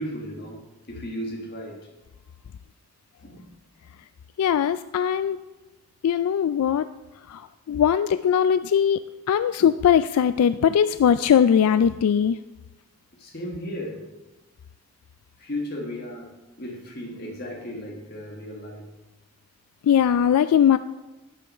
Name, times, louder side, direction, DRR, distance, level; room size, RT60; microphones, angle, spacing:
voice 1, 0.0-1.9 3.2-3.5 13.2-14.0 15.4-18.9, equal, 45° left, 1 dB, 1.5 m, -35 dB
voice 2, 4.4-5.4 6.0-6.9 7.3-7.4 7.7-9.0 9.3-12.4 19.8-20.8, left 8 dB, 85° left, 14 dB, 0.3 m, -20 dB
11.5 x 5.7 x 5.4 m, 1.1 s
head